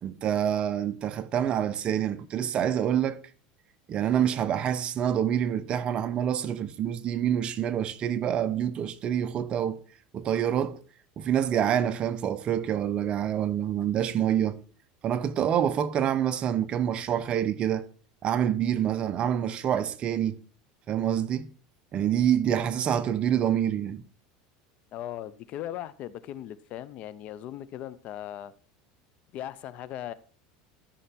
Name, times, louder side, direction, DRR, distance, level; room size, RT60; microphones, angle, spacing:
voice 1, 0.0-3.2 3.9-9.8 10.1-10.8 11.2-14.6 15.0-17.9 18.2-20.4 20.9-21.5 21.9-24.0, right 9 dB, 35° right, 0.8 m, -27 dB
voice 2, 24.9-28.5 29.3-30.1, left 12 dB, 45° left, 0.7 m, -38 dB
13.0 x 5.7 x 4.3 m
supercardioid pair, 140°, 3 cm